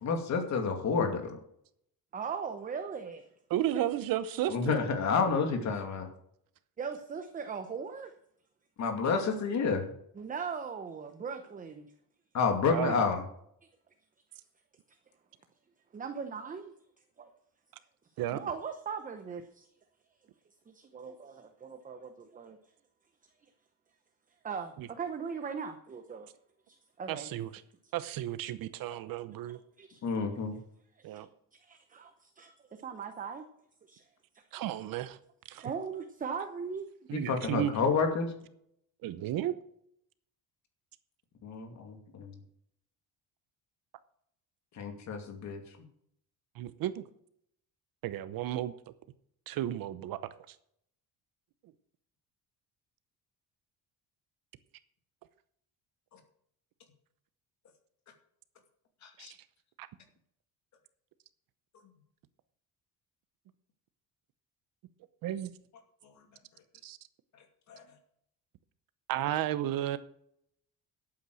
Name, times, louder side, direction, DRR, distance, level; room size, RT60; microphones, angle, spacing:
voice 1, 0.0-1.4 4.5-6.1 8.8-9.8 12.3-13.2 30.0-30.6 37.1-38.3 41.4-42.4 44.8-45.6 59.0-59.3 67.7-67.8, left 5 dB, 50° left, 5 dB, 2.5 m, -29 dB
voice 2, 2.1-3.3 3.7-3.8 6.8-8.1 10.1-11.9 15.9-16.7 17.2-17.3 18.3-19.7 20.7-22.6 24.4-26.3 26.7-27.3 29.5-30.0 31.0-31.2 31.6-33.4 33.9-34.0 34.3-34.6 35.6-36.9, right 6 dB, 20° right, 7 dB, 0.8 m, -39 dB
voice 3, 3.5-4.8 12.7-13.0 18.2-18.4 24.8-24.9 27.1-27.5 27.9-29.6 31.0-31.3 34.5-35.2 35.5-35.7 37.1-37.7 39.0-39.5 46.6-47.0 48.0-48.7 49.5-50.5 59.2-59.3 59.8-59.9 65.2-65.5 66.8-67.0 69.1-70.0, right 12 dB, 65° right, 13 dB, 0.9 m, -33 dB
12.0 x 8.7 x 6.3 m, 0.70 s
cardioid pair, 160°, 37 cm